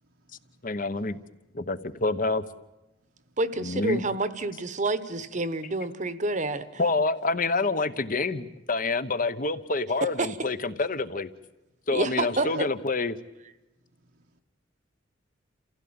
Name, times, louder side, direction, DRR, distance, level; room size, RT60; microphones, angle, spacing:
voice 1, 0.0-1.3 3.3-3.7 12.3-12.7 14.0-14.4, right 4 dB, 80° right, 0 dB, 1.2 m, -49 dB
voice 2, 0.6-1.2 1.5-2.4 3.6-4.0 6.8-11.3 11.9-13.2, left 3 dB, 45° left, 12 dB, 1.0 m, -27 dB
voice 3, 3.4-6.8 10.2-10.5 11.9-12.7, right 2 dB, 40° right, 13 dB, 1.1 m, -28 dB
28.5 x 16.0 x 8.8 m, 1.0 s
head